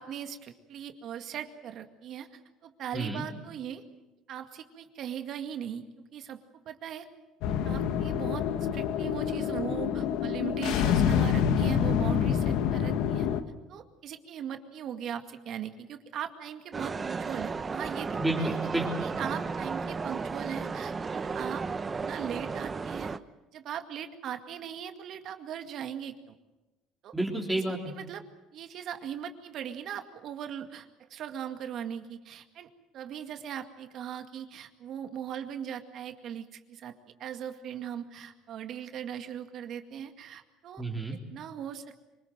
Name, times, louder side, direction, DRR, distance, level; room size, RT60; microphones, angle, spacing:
voice 1, 0.0-3.8 4.3-6.4 6.7-7.1 7.6-13.3 13.7-18.6 19.0-21.6 22.0-23.1 23.5-26.4 27.0-27.1 27.6-28.2 28.5-36.9 37.2-40.8 41.3-42.1, right 9 dB, 55° right, 7 dB, 2.1 m, -39 dB
voice 2, 2.9-3.2 18.2-18.9 27.1-27.9 40.8-41.2, right 2 dB, 5° right, 0 dB, 3.4 m, -30 dB
sound 1, 7.4-13.4, left 8 dB, 75° left, 1.4 m, -27 dB
sound 2, 16.7-23.2, right 4 dB, 25° right, 0.8 m, -34 dB
25.5 x 19.5 x 7.7 m, 1.1 s
supercardioid pair, 100°, 0 cm